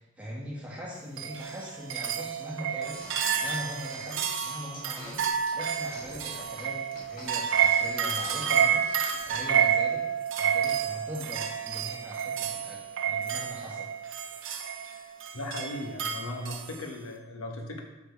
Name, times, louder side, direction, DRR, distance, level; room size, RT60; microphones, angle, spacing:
voice 1, 0.0-10.1 10.4-13.9, equal, 5° right, -5 dB, 1.7 m, -41 dB
sound 1, 1.2-16.8, right 8 dB, 60° right, 0.7 m, -29 dB
sound 2, 2.9-9.6, left 1 dB, 40° left, 1.8 m, -47 dB
voice 2, 15.3-17.8, left 1 dB, 80° left, 2 dB, 1.2 m, -37 dB
6.8 x 6.0 x 4.5 m, 0.96 s
head